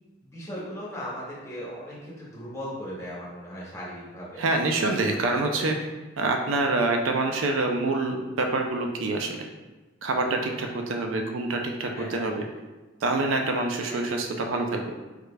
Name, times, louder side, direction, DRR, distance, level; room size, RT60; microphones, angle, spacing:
voice 1, 0.2-4.4 5.1-5.3 5.8-5.9 11.9-12.3 13.9-14.0, equal, 15° left, -7 dB, 0.8 m, -38 dB
voice 2, 4.4-5.8 6.2-9.4 10.0-12.4 13.0-14.9, right 2 dB, 85° right, 3 dB, 0.4 m, -26 dB
3.5 x 3.2 x 2.2 m, 1.2 s
head